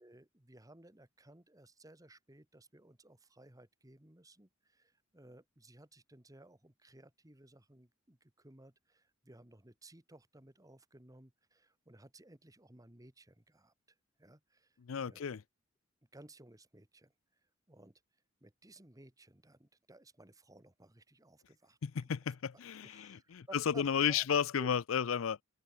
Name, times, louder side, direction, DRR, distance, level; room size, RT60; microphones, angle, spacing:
voice 1, 0.0-13.7 14.2-15.3 16.1-17.1 17.7-18.0 18.4-21.8 22.8-24.3 24.6-24.7, right 1 dB, 15° right, 1.8 m, -58 dB
voice 2, 14.8-15.4 21.8-25.4, left 7 dB, 90° left, 0.5 m, -33 dB
head